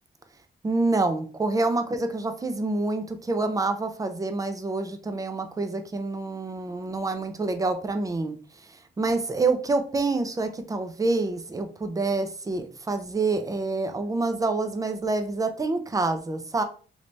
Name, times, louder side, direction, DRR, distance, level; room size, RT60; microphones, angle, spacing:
voice 1, 0.6-8.4 8.7-16.6, right 3 dB, 15° right, 8 dB, 0.4 m, -27 dB
3.2 x 3.2 x 2.6 m, 0.39 s
wide cardioid pair, 135°, 20 cm